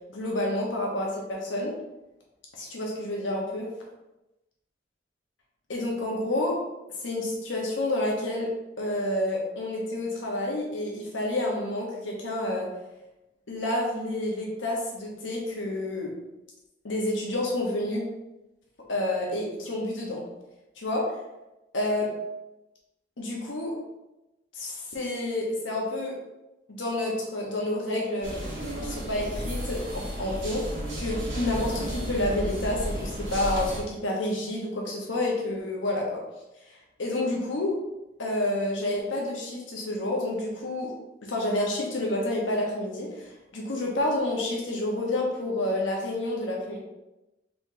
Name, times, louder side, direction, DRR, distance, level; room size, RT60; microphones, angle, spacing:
voice 1, 0.1-1.7 2.5-3.7 5.7-6.6 7.0-8.5 8.8-12.7 13.5-16.1 16.8-18.1 18.9-20.3 20.8-21.1 21.7-22.1 23.2-23.7 24.5-26.2 26.7-28.4 28.8-36.2 37.0-37.7 38.2-40.9 41.2-46.8, left 1 dB, 90° left, -1 dB, 1.1 m, -29 dB
sound 1, 28.2-33.8, equal, 85° right, 1.3 m, -33 dB
4.4 x 3.4 x 2.8 m, 0.98 s
head